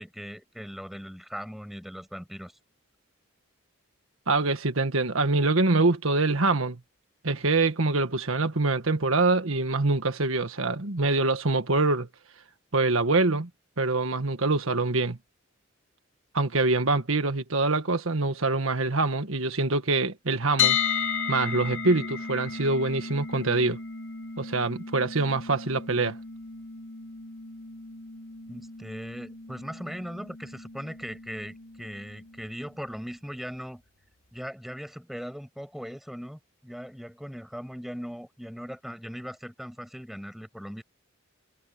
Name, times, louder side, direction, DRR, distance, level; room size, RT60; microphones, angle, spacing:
voice 1, 0.0-2.5 28.5-33.8 34.3-40.8, equal, ahead, 5.6 m, -39 dB
voice 2, 4.3-6.8 7.2-12.1 12.7-13.5 13.8-15.2 16.3-20.8 21.3-23.8 24.4-26.2, right 3 dB, 80° right, 1.6 m, -25 dB
sound 1, 20.6-32.5, left 7 dB, 70° left, 2.2 m, -34 dB
head